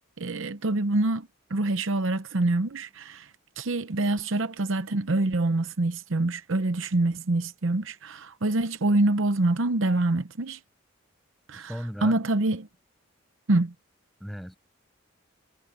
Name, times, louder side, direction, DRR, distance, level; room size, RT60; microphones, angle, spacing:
voice 1, 0.2-3.3 3.6-10.6 11.5-12.7 13.5-13.7, right 2 dB, 65° right, 0.8 m, -26 dB
voice 2, 11.5-12.2 14.2-14.6, equal, ahead, 6.6 m, -36 dB
head